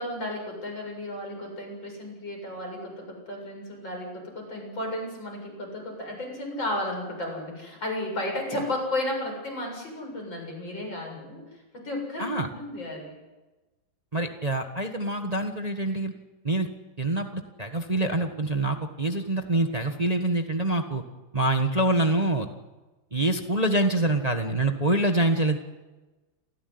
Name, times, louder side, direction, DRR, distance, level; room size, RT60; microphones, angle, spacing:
voice 1, 0.0-11.4 11.7-13.2, left 1 dB, 75° left, 1 dB, 8.3 m, -33 dB
voice 2, 14.1-16.1 16.4-16.7 17.0-21.0 21.3-22.5 23.1-25.6, right 1 dB, 20° right, 5 dB, 1.5 m, -25 dB
28.0 x 16.0 x 9.7 m, 1.2 s
omnidirectional pair, 2.1 m